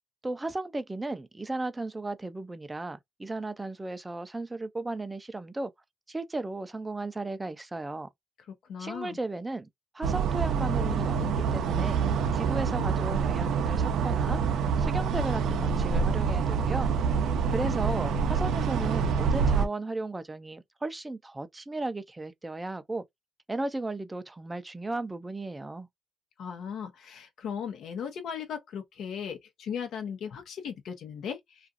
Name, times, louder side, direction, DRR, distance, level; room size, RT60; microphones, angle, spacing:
voice 1, 0.2-5.7 6.1-8.1 8.8-9.7 9.9-12.0 12.3-14.4 14.8-16.9 17.5-23.0 23.5-25.9, right 2 dB, 15° right, 0.4 m, -35 dB
voice 2, 8.7-9.2 26.4-31.7, left 7 dB, 75° left, 0.7 m, -37 dB
sound 1, 10.0-19.7, right 6 dB, 80° right, 0.4 m, -26 dB
2.4 x 2.4 x 2.5 m
cardioid pair, 90°, 0 cm